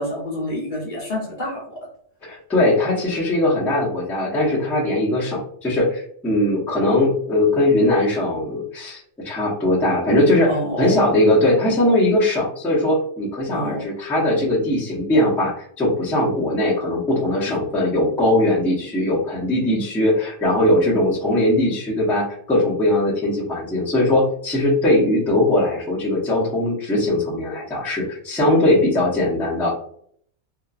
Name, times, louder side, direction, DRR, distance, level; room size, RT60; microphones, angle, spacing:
voice 1, 0.0-1.9 10.5-11.0 13.5-13.9 17.5-17.6, equal, 45° left, -5 dB, 0.8 m, -28 dB
voice 2, 2.2-10.5 10.8-29.8, left 1 dB, ahead, -7 dB, 0.6 m, -20 dB
2.7 x 2.5 x 2.4 m, 0.64 s
omnidirectional pair, 1.3 m